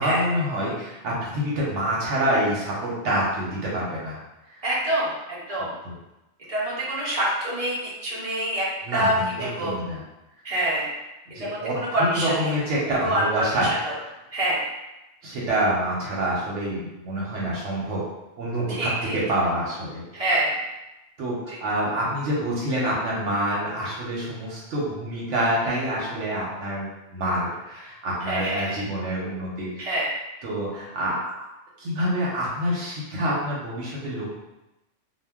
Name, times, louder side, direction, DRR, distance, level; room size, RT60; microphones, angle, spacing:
voice 1, 0.0-4.2 4.6-4.7 5.8-6.0 8.9-10.0 11.3-13.7 15.2-16.8 17.0-18.0 18.4-20.2 21.2-30.0 30.4-31.5 31.8-34.3, right 1 dB, 80° right, -5 dB, 0.9 m, -27 dB
voice 2, 4.6-5.1 5.5-5.7 6.5-8.7 8.9-9.7 10.4-10.9 11.4-12.5 13.0-14.0 14.3-14.6 18.7-19.1 20.1-20.5 28.3-28.8 29.8-30.1, right 1 dB, 40° right, -7 dB, 0.6 m, -26 dB
2.2 x 2.1 x 3.4 m, 0.97 s
omnidirectional pair, 1.2 m